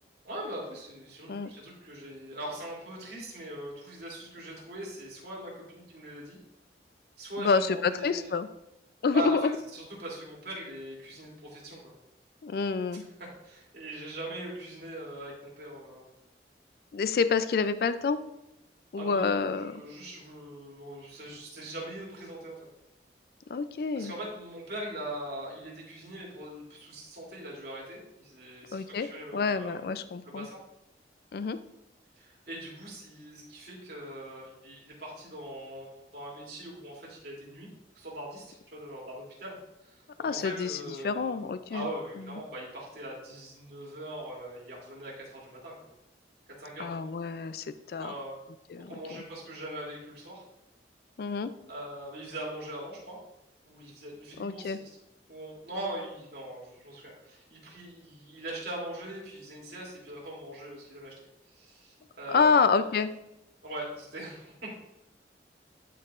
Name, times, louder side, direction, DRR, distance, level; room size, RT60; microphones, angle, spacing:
voice 1, 0.2-6.4 7.2-8.3 9.1-9.4 9.7-11.9 13.2-16.0 18.9-22.6 23.9-29.8 30.2-30.6 32.2-37.7 37.9-39.5 39.9-40.0 40.3-45.7 46.6-46.9 48.0-48.4 48.9-50.4 51.7-53.2 53.7-54.8 55.3-61.1 61.5-62.8 63.6-64.8, right 1 dB, 60° right, -4 dB, 2.8 m, -41 dB
voice 2, 7.4-8.5 9.0-9.5 12.4-13.0 16.9-18.2 18.9-19.8 23.5-24.1 28.7-30.5 31.3-31.6 40.2-40.8 41.0-41.9 42.3-42.4 46.8-48.1 48.7-49.2 51.2-51.5 54.4-54.8 62.3-63.1, left 5 dB, 60° left, 12 dB, 0.3 m, -28 dB
12.0 x 4.6 x 2.5 m, 0.88 s
head